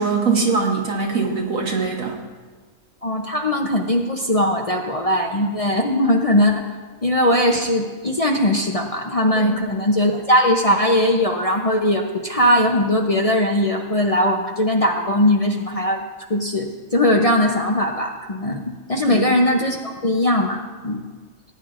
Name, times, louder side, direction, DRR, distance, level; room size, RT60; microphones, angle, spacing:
voice 1, 0.0-2.2 9.4-9.6 19.0-19.3, right 4 dB, 85° right, 1 dB, 1.7 m, -22 dB
voice 2, 3.0-6.6 7.0-16.0 16.3-19.8 20.0-21.0, left 1 dB, 35° left, 2 dB, 0.6 m, -19 dB
18.5 x 9.7 x 2.5 m, 1.5 s
omnidirectional pair, 1.4 m